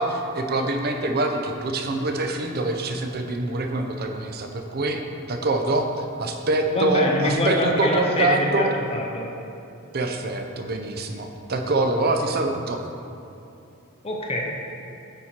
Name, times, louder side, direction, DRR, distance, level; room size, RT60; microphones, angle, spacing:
voice 1, 0.0-5.0 5.3-8.7 9.9-12.8, right 2 dB, 45° right, 4 dB, 0.6 m, -25 dB
voice 2, 6.7-9.3 14.0-14.4, left 1 dB, 25° left, -1 dB, 0.6 m, -25 dB
8.8 x 4.3 x 4.4 m, 2.8 s
head